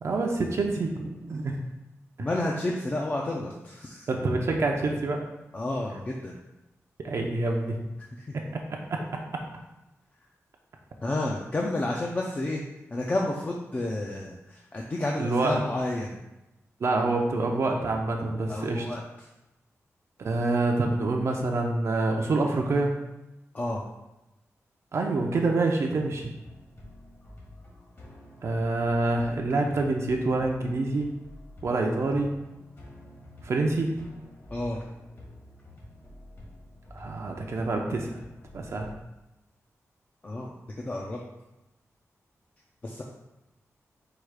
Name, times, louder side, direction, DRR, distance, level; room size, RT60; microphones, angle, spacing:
voice 1, 0.0-1.6 2.2-2.3 4.1-5.2 7.0-7.8 8.3-8.6 8.9-9.0 9.3-9.4 15.2-15.6 16.8-18.9 20.2-22.9 24.9-26.3 28.4-31.1 31.6-32.3 33.4-34.0 36.9-38.2 38.5-38.9, right 2 dB, 60° right, 1 dB, 0.5 m, -26 dB
voice 2, 2.2-4.1 5.5-6.4 8.2-8.3 11.0-12.6 12.9-16.2 18.5-19.0 23.5-23.8 34.5-34.8 40.2-41.2 42.8-43.0, left 1 dB, 30° left, -2 dB, 0.4 m, -30 dB
sound 1, 26.1-38.9, left 1 dB, 50° left, 1.5 m, -48 dB
4.7 x 2.4 x 4.7 m, 0.97 s
wide cardioid pair, 145°, 6 cm